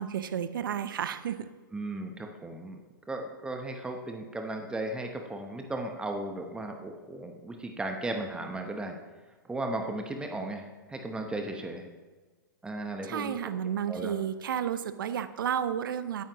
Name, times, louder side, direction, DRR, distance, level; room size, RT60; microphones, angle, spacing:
voice 1, 0.0-1.5 13.1-16.2, right 9 dB, 70° right, 12 dB, 0.7 m, -32 dB
voice 2, 1.7-2.8 3.1-9.0 9.4-11.9 12.6-13.4 13.6-14.1, right 2 dB, 10° right, 3 dB, 0.9 m, -36 dB
12.0 x 9.4 x 3.0 m, 1.4 s
hypercardioid pair, 130°, 12 cm